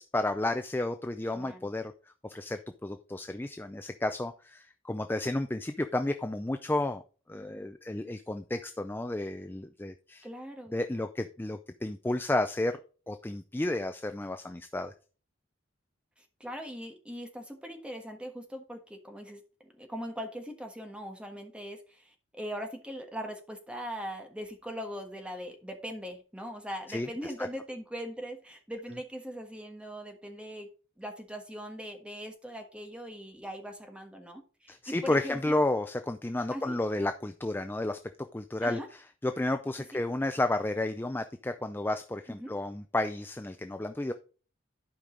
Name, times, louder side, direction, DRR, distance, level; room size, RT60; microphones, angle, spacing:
voice 1, 0.0-1.9 2.2-7.0 7.3-10.3 10.7-12.8 13.1-14.9 26.9-27.5 34.7-38.0 38.3-44.1, left 2 dB, 10° left, 8 dB, 0.4 m, -32 dB
voice 2, 1.3-1.7 10.2-10.8 16.2-30.7 31.0-35.6 36.5-36.8 38.6-38.9 39.9-40.0 42.3-42.5, equal, 5° right, 4 dB, 1.4 m, -41 dB
11.5 x 5.2 x 3.8 m, 0.37 s
head